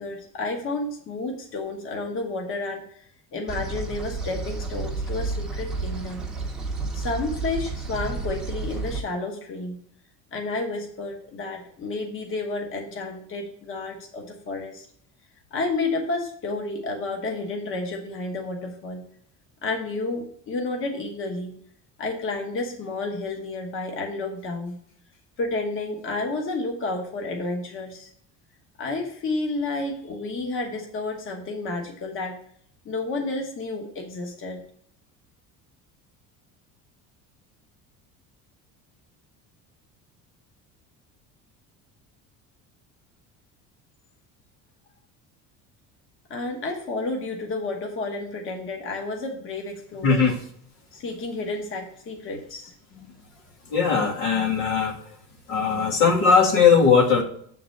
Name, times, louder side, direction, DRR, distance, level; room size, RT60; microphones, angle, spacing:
voice 1, 0.0-3.0 3.3-6.2 6.9-9.8 10.3-14.9 15.5-19.0 19.6-21.6 22.0-24.7 25.4-28.1 28.8-32.4 32.8-34.6 46.3-50.3 50.9-52.7, left 3 dB, 40° left, 2 dB, 1.1 m, -31 dB
sound 1, 3.5-9.0, right 3 dB, ahead, 0.8 m, -31 dB
voice 2, 50.0-50.3 53.7-55.0 55.5-57.2, left 5 dB, 80° left, 3 dB, 1.6 m, -19 dB
7.3 x 3.9 x 6.5 m, 0.64 s
cardioid pair, 165°, 34 cm